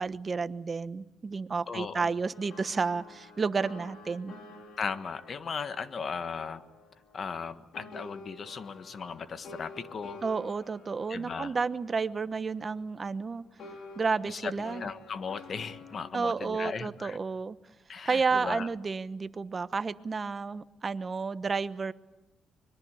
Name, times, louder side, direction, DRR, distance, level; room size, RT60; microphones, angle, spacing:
voice 1, 0.0-4.3 10.2-13.4 14.0-14.9 16.1-17.6 18.0-21.9, right 4 dB, 35° right, 14 dB, 1.0 m, -31 dB
voice 2, 1.7-2.1 4.8-6.6 7.1-10.2 11.1-11.5 14.2-17.2 17.9-18.7, left 5 dB, 45° left, 12 dB, 1.5 m, -37 dB
sound 1, 2.3-7.5 7.7-13.2 13.6-16.1, left 3 dB, 70° left, 4.7 m, -50 dB
25.0 x 22.5 x 8.4 m, 1.0 s
cardioid pair, 90°, 0 cm